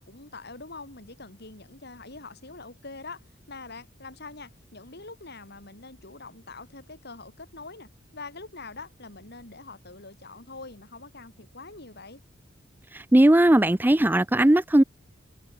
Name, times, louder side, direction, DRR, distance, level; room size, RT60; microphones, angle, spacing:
voice 1, 0.0-12.2, left 3 dB, 60° left, 5.4 m, -44 dB
voice 2, 12.9-14.8, right 1 dB, 10° right, 0.5 m, -18 dB
head